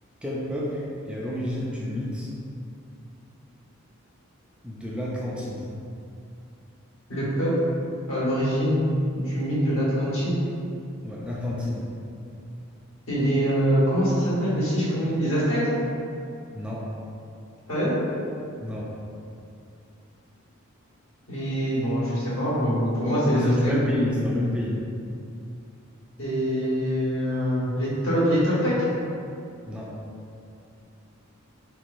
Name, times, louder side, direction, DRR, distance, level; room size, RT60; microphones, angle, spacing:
voice 1, 0.2-2.3 4.6-5.7 11.0-11.9 16.5-16.9 18.6-18.9 23.3-24.8 29.7-29.9, left 1 dB, 5° right, -6 dB, 0.4 m, -30 dB
voice 2, 7.1-7.5 8.1-8.8 9.1-10.4 13.1-15.6 17.7-17.9 21.3-23.7 26.2-28.7, equal, 70° left, -9 dB, 1.3 m, -24 dB
3.9 x 2.9 x 2.6 m, 2.5 s
head